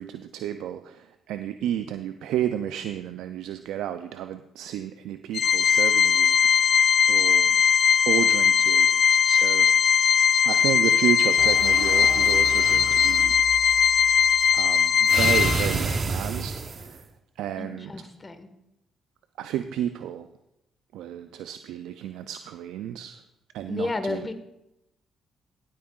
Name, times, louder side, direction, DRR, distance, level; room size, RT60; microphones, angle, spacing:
voice 1, 0.0-7.6 8.1-8.9 9.2-9.7 10.4-13.3 14.5-17.0 17.4-17.9 19.4-20.3 20.9-23.2 23.5-24.3, right 11 dB, 75° right, 9 dB, 0.4 m, -32 dB
Organ, 5.3-16.0, left 7 dB, 55° left, 0.4 m, -20 dB
sound 1, 11.4-14.9, equal, 5° left, 1.6 m, -39 dB
sound 2, 11.5-13.2 15.1-17.0, right 4 dB, 45° right, 0.9 m, -30 dB
voice 2, 17.6-18.5 23.7-24.3, left 2 dB, 30° left, 9 dB, 1.4 m, -31 dB
15.5 x 8.6 x 2.4 m, 0.87 s
hypercardioid pair, 55°, 0 cm